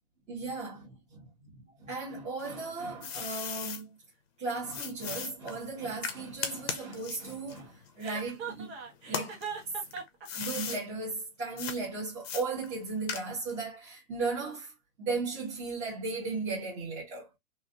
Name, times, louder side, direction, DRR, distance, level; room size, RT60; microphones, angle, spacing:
voice 1, 0.3-1.0 1.8-4.0 4.4-8.7 9.0-9.4 10.3-14.7 15.0-17.3, right 3 dB, 15° right, 1.5 m, -36 dB
sound 1, 2.4-3.8 4.7-8.6 9.0-10.8 11.6-11.8 12.2-13.6, left 7 dB, 45° left, 0.9 m, -38 dB
Chuckle chortle, 8.0-10.3, right 6 dB, 45° right, 1.6 m, -39 dB
3.7 x 2.7 x 2.5 m
hypercardioid pair, 155°, 41 cm